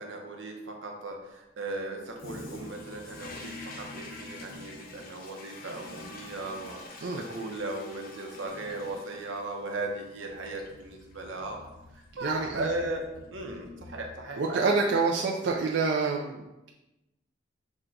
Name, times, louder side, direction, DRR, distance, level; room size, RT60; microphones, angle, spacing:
voice 1, 0.0-11.6 11.9-13.0 13.3-14.9, right 2 dB, 90° right, 2 dB, 0.8 m, -37 dB
Toilet flush, 2.1-14.5, left 2 dB, 50° left, 0.6 m, -46 dB
voice 2, 12.2-12.7 14.4-16.7, right 4 dB, 65° right, -1 dB, 0.4 m, -27 dB
6.1 x 2.2 x 3.8 m, 0.97 s
head